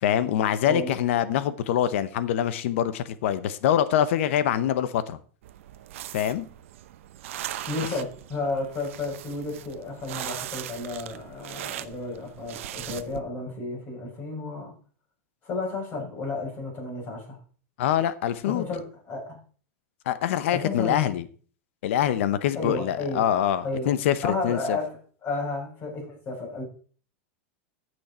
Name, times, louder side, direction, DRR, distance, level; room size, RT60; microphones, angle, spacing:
voice 1, 0.0-5.2 6.1-6.5 17.8-18.6 20.1-21.2 21.8-24.8, left 10 dB, 70° left, 0.9 m, -24 dB
sound 1, 5.4-13.2, right 13 dB, 75° right, 0.7 m, -39 dB
voice 2, 7.7-14.7 15.4-17.4 18.4-19.4 20.5-21.1 22.5-23.2 23.6-23.9 24.2-26.6, left 3 dB, 30° left, 6.7 m, -32 dB
15.0 x 6.3 x 4.3 m
supercardioid pair, 145°, 7 cm